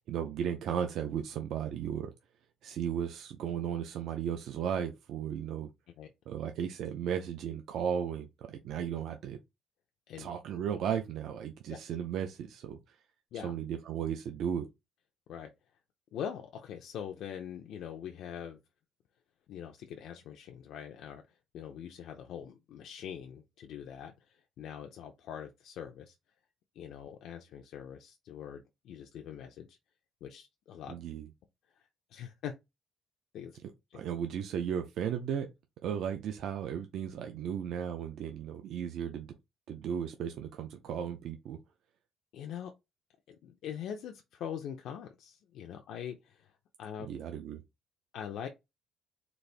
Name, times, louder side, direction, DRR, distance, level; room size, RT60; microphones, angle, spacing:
voice 1, 0.1-2.1 2.6-5.7 6.3-9.4 10.2-12.8 13.4-14.7 30.9-31.3 33.9-35.5 35.8-39.3 39.7-41.6 47.0-47.6, right 8 dB, 60° right, 0.5 m, -35 dB
voice 2, 16.1-18.6 19.5-26.1 26.8-29.8 30.2-30.9 32.1-32.5 33.3-33.5 33.9-34.0 42.3-42.7 43.3-46.5 46.8-47.1 48.1-48.5, left 9 dB, 65° left, 0.5 m, -43 dB
4.0 x 2.5 x 3.3 m
cardioid pair, 160°, 0 cm